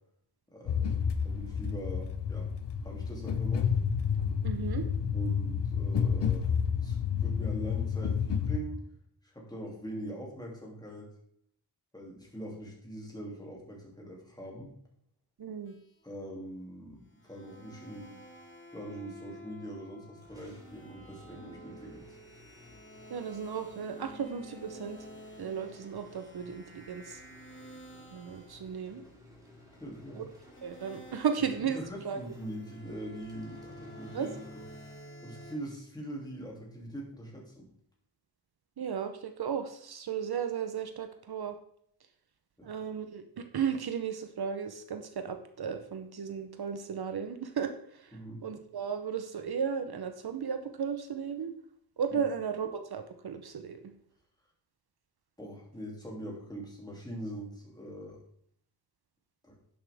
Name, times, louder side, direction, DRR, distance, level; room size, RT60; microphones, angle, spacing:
voice 1, 0.5-0.9 1.2-2.5 2.8-3.7 5.1-8.8 9.2-11.1 11.9-14.7 16.0-18.2 18.7-22.0 29.8-30.2 31.7-34.6 35.2-37.7 42.6-42.7 48.1-48.4 52.1-52.2 55.4-58.2 59.4-59.6, right 1 dB, 10° left, -2 dB, 2.8 m, -42 dB
sound 1, 0.7-8.6, left 7 dB, 75° left, 0.9 m, -30 dB
voice 2, 4.4-4.8 15.4-15.7 23.1-25.0 25.4-27.2 28.1-29.0 30.1-30.3 30.6-31.8 32.0-32.2 34.1-34.3 38.8-41.5 42.6-48.2 48.4-51.5 52.0-53.8, right 7 dB, 60° right, 7 dB, 0.8 m, -35 dB
sound 2, 15.7-16.3 17.2-28.8 30.4-35.6, equal, 30° left, 1.6 m, -51 dB
sound 3, 20.2-35.1, left 2 dB, 10° right, 3.0 m, -57 dB
10.5 x 7.6 x 3.5 m, 0.67 s
wide cardioid pair, 110°, 42 cm